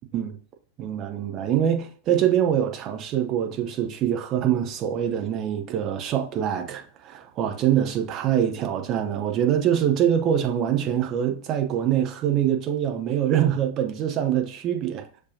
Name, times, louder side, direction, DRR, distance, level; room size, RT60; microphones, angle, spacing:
voice 1, 0.8-15.1, right 10 dB, 35° right, 0.7 m, -24 dB
6.3 x 2.7 x 2.7 m
figure-of-eight pair, 90°, 0 cm